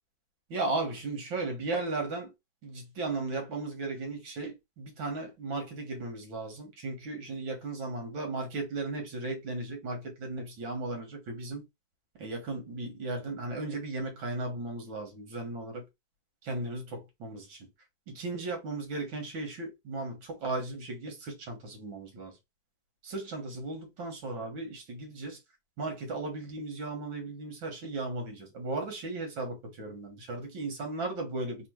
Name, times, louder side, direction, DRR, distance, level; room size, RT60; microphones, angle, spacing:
voice 1, 0.5-2.3 2.6-11.6 12.2-15.8 16.4-17.6 18.1-22.3 23.0-25.4 25.8-31.7, right 2 dB, 80° right, 2.3 m, -36 dB
4.3 x 2.5 x 4.6 m
omnidirectional pair, 2.1 m